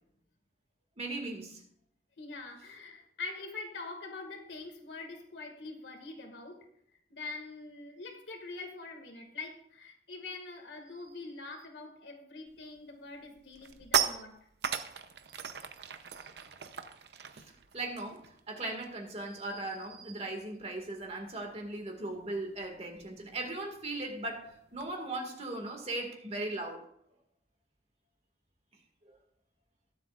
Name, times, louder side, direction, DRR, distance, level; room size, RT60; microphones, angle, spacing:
voice 1, 1.0-1.6 17.3-17.4 17.7-26.8 29.1-29.2, right 2 dB, 35° right, 2 dB, 2.1 m, -38 dB
voice 2, 2.2-6.7 7.1-14.4, left 3 dB, 80° left, 3 dB, 2.1 m, -44 dB
sound 1, 12.5-12.8 13.2-19.1 19.4-19.6 19.9-24.9, right 7 dB, 65° right, 0.8 m, -38 dB
21.0 x 7.8 x 2.5 m, 0.70 s
head